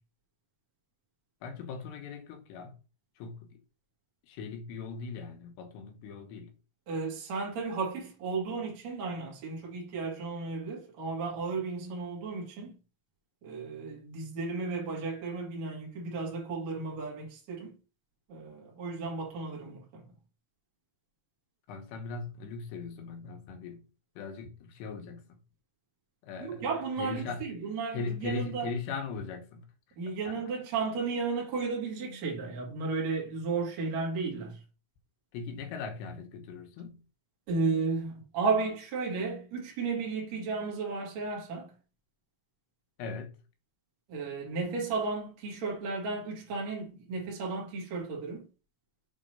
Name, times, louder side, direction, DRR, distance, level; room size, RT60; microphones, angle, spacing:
voice 1, 1.4-2.8 3.2-3.6 4.2-6.6 21.7-23.9 24.2-25.4 26.2-26.7 27.0-27.5 27.9-29.7 30.1-30.5 32.0-32.2 35.3-37.0 43.0-43.3, left 5 dB, 85° left, 3.4 m, -39 dB
voice 2, 6.9-12.8 13.4-17.7 18.3-20.0 26.4-28.7 30.0-34.6 37.5-41.7 44.1-48.4, right 4 dB, 50° right, 2.9 m, -34 dB
7.5 x 4.4 x 5.3 m
omnidirectional pair, 4.7 m